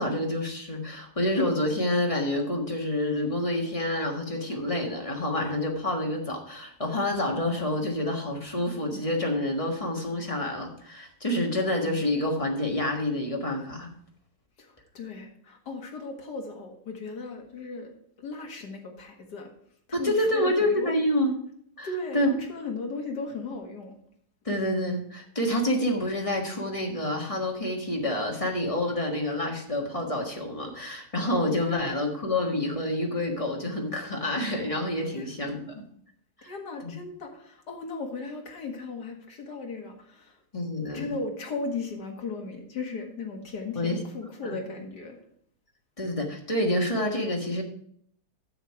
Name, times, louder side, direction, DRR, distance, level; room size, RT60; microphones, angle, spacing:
voice 1, 0.0-13.9 19.9-21.3 21.8-21.9 22.1-22.3 24.4-35.7 36.4-36.5 36.8-36.9 40.5-41.1 43.7-44.0 44.4-44.6 46.0-47.6, left 1 dB, 20° left, 0 dB, 1.3 m, -28 dB
voice 2, 14.6-17.9 18.2-19.5 19.9-20.9 21.8-24.0 31.6-32.2 35.1-35.6 36.4-40.4 40.9-45.2, left 3 dB, 50° left, 2 dB, 2.2 m, -37 dB
9.7 x 6.9 x 4.7 m, 0.65 s
omnidirectional pair, 2.3 m